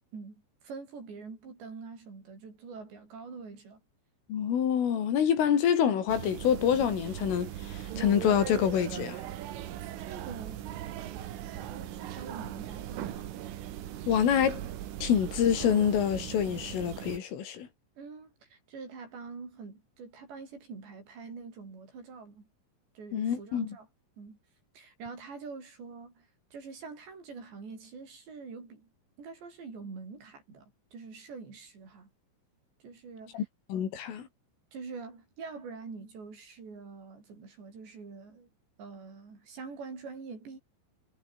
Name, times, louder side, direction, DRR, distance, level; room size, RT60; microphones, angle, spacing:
voice 1, 0.0-3.8 10.0-13.3 18.0-22.5 23.0-23.9 24.2-24.4 24.7-28.9 29.2-30.7 30.9-32.1 32.8-33.5 34.7-38.5 38.8-40.6, right 4 dB, 60° right, 9.5 m, -45 dB
voice 2, 4.3-9.2 14.1-14.7 15.0-17.7 23.1-23.7 33.3-33.4 33.7-34.3, left 8 dB, 85° left, 6.2 m, -26 dB
sound 1, 6.1-17.2, right 12 dB, 85° right, 4.6 m, -39 dB
omnidirectional pair, 5.6 m